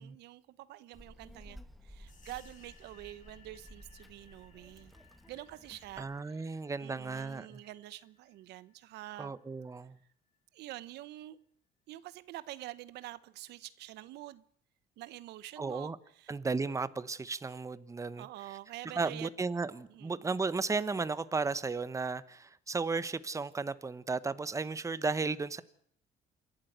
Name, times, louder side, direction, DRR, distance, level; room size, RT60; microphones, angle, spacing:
voice 1, 0.0-4.9 5.3-9.3 10.5-11.4 11.9-14.4 15.0-16.4 18.2-19.3 19.9-20.2, right 15 dB, 80° right, 0.9 m, -47 dB
Child speech kid speaking, 0.9-6.2, equal, ahead, 1.6 m, -55 dB
sound 1, 2.1-10.4, left 6 dB, 50° left, 6.3 m, -64 dB
voice 2, 6.0-7.6 9.2-10.0 15.6-16.0 16.3-18.3 18.9-25.6, right 4 dB, 20° right, 1.0 m, -34 dB
27.0 x 12.0 x 9.2 m
cardioid pair, 110°, 17 cm